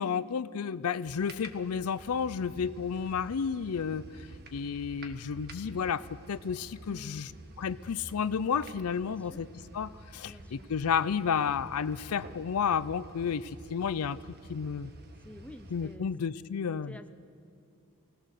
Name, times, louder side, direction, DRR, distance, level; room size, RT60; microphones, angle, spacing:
voice 1, 0.0-4.0 4.5-7.3 7.6-9.5 9.7-14.2 14.5-14.9 15.7-16.9, left 6 dB, 80° left, 16 dB, 0.5 m, -31 dB
sound 1, 1.0-16.0, right 1 dB, 45° right, 1.4 m, -49 dB
voice 2, 6.9-7.2 9.0-9.4 10.2-10.7 15.2-16.1 16.9-17.1, left 1 dB, 5° left, 8 dB, 0.7 m, -49 dB
22.5 x 17.5 x 6.6 m, 2.3 s
head